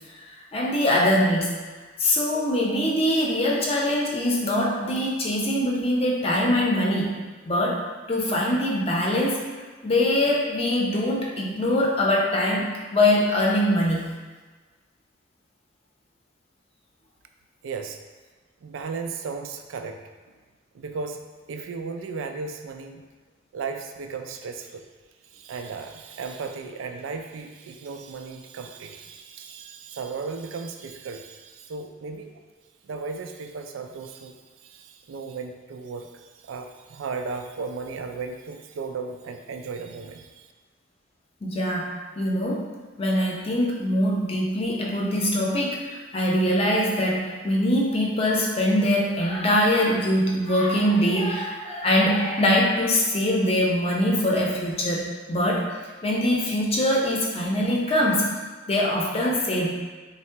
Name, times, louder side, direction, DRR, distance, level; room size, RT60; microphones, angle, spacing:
voice 1, 0.5-1.5 2.0-7.2 7.4-7.8 8.1-9.4 9.8-14.1 41.4-42.7 43.0-55.7 56.0-58.3 58.7-59.7, left 1 dB, 30° left, -2 dB, 0.6 m, -23 dB
voice 2, 17.6-18.0 18.6-20.0 20.7-21.2 21.5-23.0 23.5-24.9 25.3-32.4 32.8-40.5, right 4 dB, 90° right, 6 dB, 0.4 m, -35 dB
3.6 x 2.0 x 4.3 m, 1.4 s
head